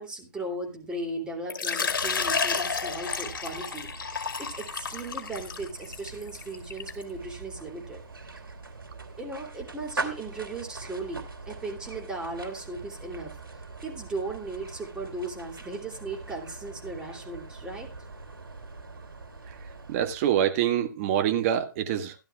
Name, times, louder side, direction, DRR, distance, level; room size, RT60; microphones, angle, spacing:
voice 1, 0.0-8.0 9.2-13.3 13.8-17.9, right 2 dB, 5° right, 2.9 m, -37 dB
Water / Liquid, 1.5-7.0, left 5 dB, 65° left, 2.0 m, -31 dB
sound 1, 1.8-20.5, right 3 dB, 85° right, 3.0 m, -42 dB
voice 2, 19.9-22.1, right 10 dB, 40° right, 1.6 m, -25 dB
16.0 x 12.0 x 2.4 m
figure-of-eight pair, 130°, 12 cm